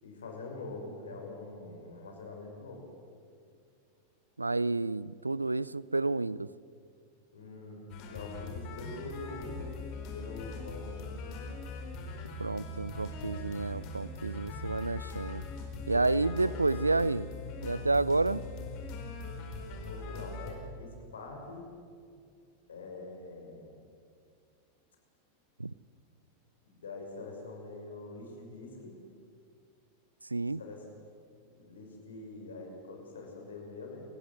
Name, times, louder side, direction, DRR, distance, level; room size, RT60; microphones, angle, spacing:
voice 1, 0.0-2.9 7.3-7.8 8.0-9.7 10.1-10.8 15.9-16.6 17.6-17.9 19.7-21.7 22.7-23.7 26.6-29.0 30.6-30.8 31.4-34.0, left 3 dB, 70° left, 1 dB, 6.0 m, -44 dB
voice 2, 4.4-6.5 12.4-15.4 15.9-17.3 17.6-18.4 25.6-25.7 30.3-30.6, right 3 dB, 85° right, 21 dB, 0.5 m, -30 dB
sound 1, 7.9-20.5, left 3 dB, 45° left, 4.7 m, -41 dB
29.0 x 15.5 x 7.9 m, 2.3 s
figure-of-eight pair, 90°, 0 cm